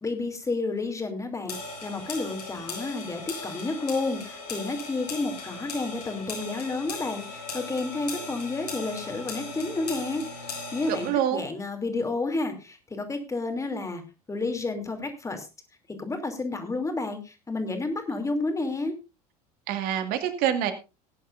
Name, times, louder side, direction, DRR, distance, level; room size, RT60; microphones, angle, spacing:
voice 1, 0.0-10.2 10.7-14.0 14.3-15.5 16.0-18.9, left 3 dB, 15° left, 5 dB, 2.8 m, -31 dB
sound 1, 1.5-11.1, left 3 dB, 75° left, 4.7 m, -38 dB
voice 2, 10.9-11.4 19.7-20.7, right 10 dB, 50° right, 8 dB, 2.0 m, -26 dB
19.5 x 10.0 x 2.6 m, 0.28 s
figure-of-eight pair, 70°, 20 cm